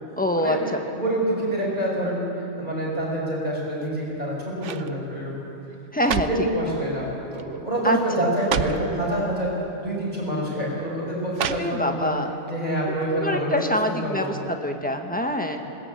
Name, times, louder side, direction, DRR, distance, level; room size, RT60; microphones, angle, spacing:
voice 1, 0.2-0.8 5.9-6.3 7.8-8.0 11.5-12.3 13.1-15.6, left 1 dB, 5° left, 4 dB, 1.4 m, -25 dB
voice 2, 0.8-5.3 6.2-12.1 12.5-13.6 13.8-14.4, right 1 dB, 35° right, -4 dB, 6.6 m, -27 dB
sound 1, 3.7-4.2 4.6-4.9 5.7-6.5 7.3-7.6 7.9-8.0 8.3-8.9 9.9-10.0 11.3-12.1 12.5-12.6, right 8 dB, 75° right, 1.1 m, -30 dB
20.5 x 18.0 x 8.3 m, 2.7 s
omnidirectional pair, 1.3 m